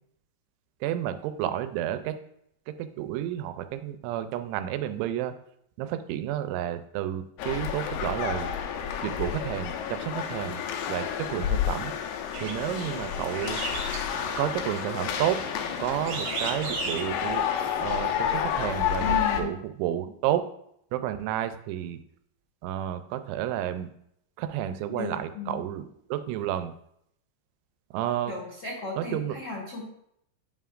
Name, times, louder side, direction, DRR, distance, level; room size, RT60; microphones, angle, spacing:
voice 1, 0.8-2.2 2.7-5.3 5.8-8.5 9.0-10.6 10.9-11.9 12.4-13.6 14.4-15.4 15.8-17.5 17.8-20.5 20.9-22.0 22.6-23.9 24.4-25.8 26.1-26.7 27.9-28.3 29.0-29.4, right 11 dB, 90° right, 10 dB, 3.0 m, -31 dB
sound 1, 7.4-19.4, left 9 dB, 85° left, 3.0 m, -30 dB
sound 2, 12.3-17.4, right 4 dB, 65° right, 2.7 m, -37 dB
voice 2, 19.0-19.6 24.9-25.6 28.3-29.8, left 3 dB, 55° left, -6 dB, 1.1 m, -35 dB
11.0 x 5.7 x 2.5 m, 0.73 s
omnidirectional pair, 5.2 m